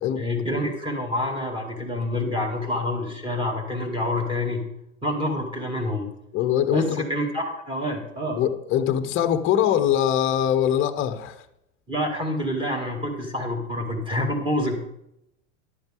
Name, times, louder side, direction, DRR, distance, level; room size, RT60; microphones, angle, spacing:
voice 1, 0.2-4.6 5.0-6.1 6.7-8.4 11.9-14.9, left 1 dB, 10° right, 2.2 m, -27 dB
voice 2, 6.3-7.1 8.4-11.5, left 10 dB, 30° left, 0.8 m, -22 dB
11.0 x 7.9 x 3.7 m
hypercardioid pair, 105°, 41 cm